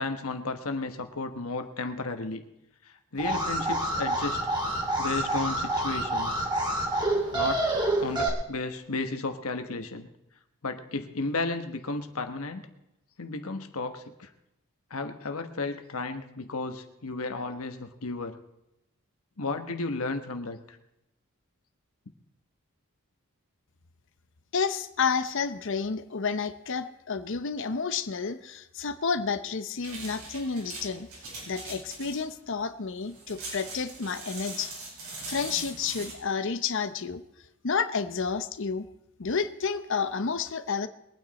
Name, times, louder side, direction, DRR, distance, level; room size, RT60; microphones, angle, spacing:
voice 1, 0.0-2.4 3.1-4.4 5.0-6.5 7.3-7.6 8.0-10.1 10.6-12.6 13.2-14.3 14.9-18.4 19.4-20.8, left 3 dB, 80° left, 7 dB, 1.3 m, -33 dB
Alarm, 3.2-8.3, right 1 dB, 20° right, 2.6 m, -28 dB
voice 2, 24.5-31.1 31.5-34.7 35.3-37.2 37.6-38.8 39.2-40.9, left 5 dB, 60° left, 10 dB, 0.8 m, -30 dB
sound 1, 29.8-36.1, right 3 dB, 80° right, 5.3 m, -41 dB
22.0 x 9.4 x 4.2 m, 0.85 s
head